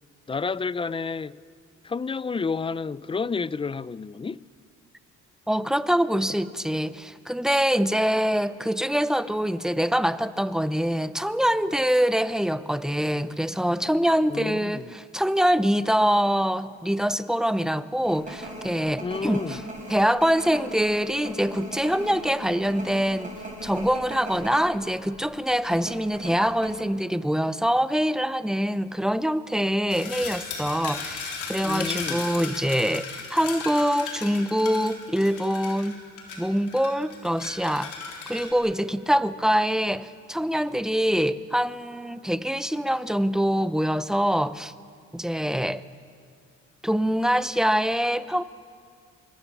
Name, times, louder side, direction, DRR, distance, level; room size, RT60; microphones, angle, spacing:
voice 1, 0.3-1.4 1.8-4.4 14.3-14.8 19.0-19.6 31.6-32.2, left 4 dB, 20° left, 0.5 m, -30 dB
voice 2, 5.5-19.6 19.9-36.0 36.4-37.9 38.3-44.7 45.1-45.8 46.8-48.4, equal, ahead, 0.8 m, -24 dB
sound 1, 18.1-24.7 25.0-25.1 25.7-26.7, right 1 dB, 25° right, 6.7 m, -38 dB
sound 2, 29.9-38.5, left 5 dB, 80° left, 3.9 m, -36 dB
25.0 x 20.5 x 7.2 m
cardioid pair, 90°, 30 cm